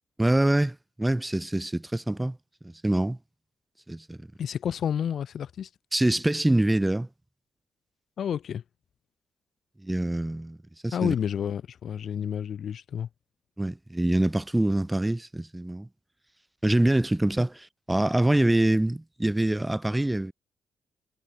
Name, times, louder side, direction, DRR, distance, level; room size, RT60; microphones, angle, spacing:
voice 1, 0.2-2.4 2.8-3.2 3.9-4.2 5.9-7.1 9.8-10.6 10.8-11.1 13.6-15.9 16.6-20.3, right 1 dB, 10° right, 4.4 m, -25 dB
voice 2, 4.4-5.7 8.2-8.6 10.9-13.1, left 8 dB, 65° left, 5.7 m, -30 dB
cardioid pair, 100°, 0 cm